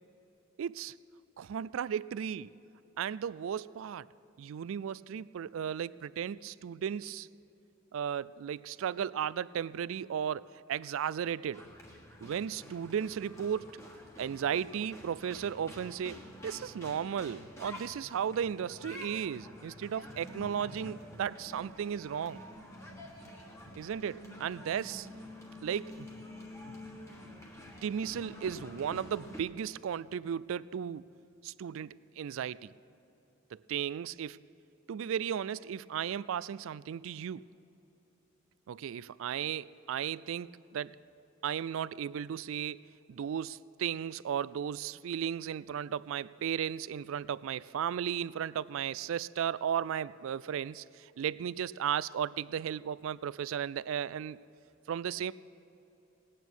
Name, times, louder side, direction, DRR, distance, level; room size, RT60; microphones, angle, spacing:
voice 1, 0.6-0.9 1.4-2.5 3.0-4.1 4.4-7.3 7.9-11.7 12.2-13.8 14.2-16.2 16.4-22.4 23.7-25.1 25.6-26.1 26.6-26.8 27.8-31.0 31.4-32.7 33.5-34.4 34.9-37.5 38.7-41.0 41.4-42.8 43.1-54.4 54.9-55.3, right 8 dB, 70° right, 19 dB, 0.3 m, -35 dB
sound 1, 11.5-29.4, left 1 dB, 15° left, 1.4 m, -48 dB
19.0 x 9.1 x 6.2 m, 3.0 s
head